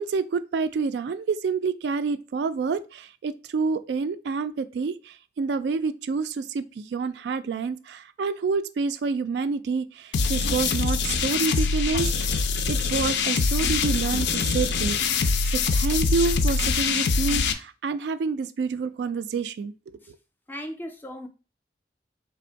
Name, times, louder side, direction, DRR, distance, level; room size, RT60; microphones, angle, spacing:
voice 1, 0.0-15.3 15.7-19.7, right 4 dB, 70° right, 0.3 m, -28 dB
sound 1, 10.1-17.5, left 4 dB, 75° left, 0.4 m, -24 dB
voice 2, 20.5-21.3, equal, 10° left, 0.4 m, -37 dB
3.5 x 2.5 x 4.4 m
head